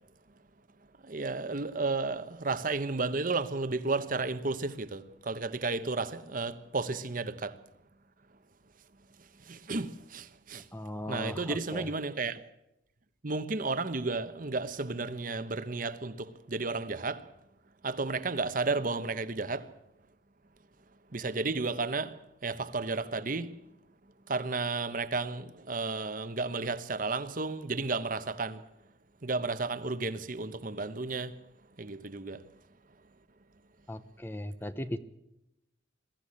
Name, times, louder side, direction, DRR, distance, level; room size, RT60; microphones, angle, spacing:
voice 1, 1.0-7.6 9.5-10.7 11.1-12.4 13.2-17.3 17.8-19.7 21.1-22.2 22.4-23.5 24.3-28.6 29.2-31.4 31.8-32.5, right 3 dB, 45° right, 1.0 m, -33 dB
voice 2, 10.7-11.9 33.9-35.0, left 1 dB, 10° left, 0.8 m, -38 dB
22.0 x 14.5 x 8.6 m
head